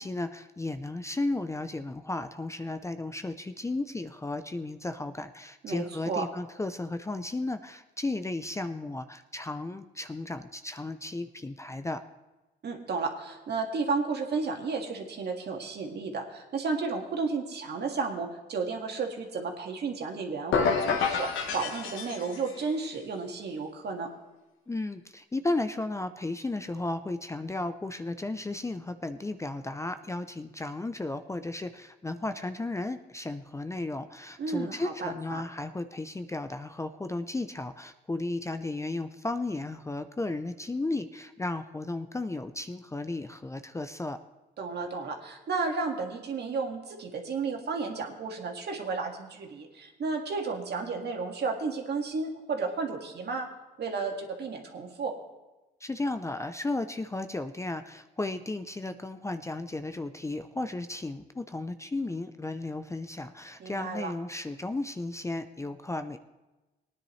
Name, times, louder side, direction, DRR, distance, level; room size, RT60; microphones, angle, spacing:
voice 1, 0.0-12.0 24.7-44.2 55.8-66.2, left 2 dB, 15° left, 9 dB, 0.5 m, -34 dB
voice 2, 5.6-6.3 12.6-24.1 34.4-35.4 44.6-53.5 53.8-55.1 63.6-64.1, right 4 dB, 55° right, 2 dB, 1.9 m, -33 dB
sound 1, 20.5-22.6, left 6 dB, 85° left, 1.4 m, -28 dB
19.0 x 10.0 x 3.2 m, 1.1 s
cardioid pair, 90°, 20 cm